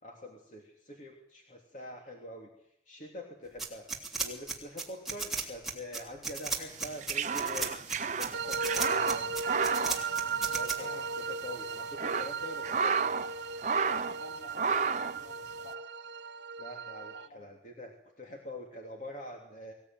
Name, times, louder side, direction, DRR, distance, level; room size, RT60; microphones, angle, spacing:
voice 1, 0.0-2.5 2.9-7.8 8.2-9.3 10.5-13.1 16.6-19.7, left 1 dB, 40° left, 1 dB, 3.2 m, -45 dB
sound 1, 3.6-10.7, right 4 dB, ahead, 3.2 m, -34 dB
sound 2, 6.8-10.9 11.1-11.2 11.7-13.3 13.6-14.2 14.5-15.2, right 5 dB, 40° right, 0.8 m, -31 dB
sound 3, 8.3-17.3, right 5 dB, 70° right, 1.0 m, -37 dB
voice 2, 13.8-15.8 17.1-17.4, equal, 75° left, 3 dB, 6.2 m, -49 dB
24.5 x 17.0 x 9.3 m, 0.76 s
head